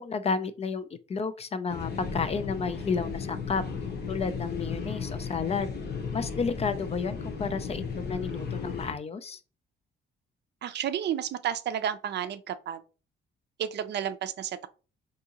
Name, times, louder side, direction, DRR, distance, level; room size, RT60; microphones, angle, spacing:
voice 1, 0.0-3.6 4.1-5.7 6.1-9.4, left 5 dB, 30° left, 0.4 m, -31 dB
sound 1, 1.7-8.9, left 5 dB, 55° left, 0.9 m, -35 dB
voice 2, 10.6-12.8 13.6-14.7, right 9 dB, 60° right, 0.4 m, -31 dB
3.6 x 2.7 x 2.8 m
cardioid pair, 90°, 20 cm